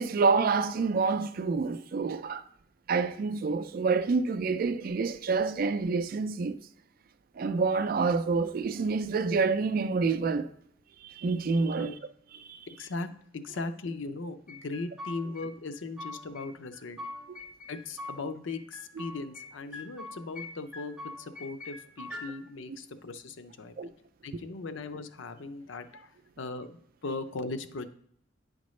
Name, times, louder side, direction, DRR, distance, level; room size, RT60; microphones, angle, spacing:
voice 1, 0.0-2.4 2.9-6.6 7.4-10.5 11.0-11.9 12.5-12.6 17.3-17.4 22.7-22.8 23.8-23.9, right 4 dB, 50° right, 0.3 m, -27 dB
voice 2, 12.7-13.1 13.3-17.0 17.7-23.9 24.2-27.9, left 3 dB, 85° left, 0.6 m, -38 dB
sound 1, 14.5-15.4 15.7-16.5 16.7-18.2 18.5-19.5 19.7-20.5 20.7-22.3, left 2 dB, 5° right, 1.3 m, -42 dB
9.3 x 5.1 x 3.1 m
head